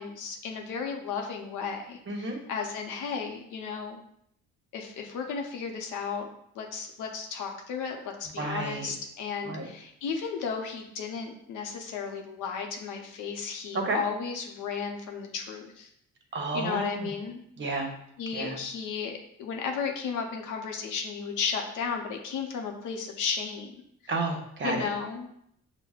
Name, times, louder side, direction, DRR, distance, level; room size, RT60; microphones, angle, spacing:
voice 1, 0.0-4.0 4.7-6.2 6.5-15.9 16.5-17.4 18.2-23.7 24.6-25.3, left 5 dB, 85° left, 3 dB, 0.7 m, -34 dB
voice 2, 2.1-2.4 8.4-8.9 9.4-9.6 13.7-14.0 16.3-17.1 17.6-17.9 18.3-18.6 24.1-24.8, right 2 dB, 40° right, 2 dB, 0.8 m, -31 dB
5.9 x 2.1 x 2.3 m, 0.73 s
cardioid pair, 90°, 30 cm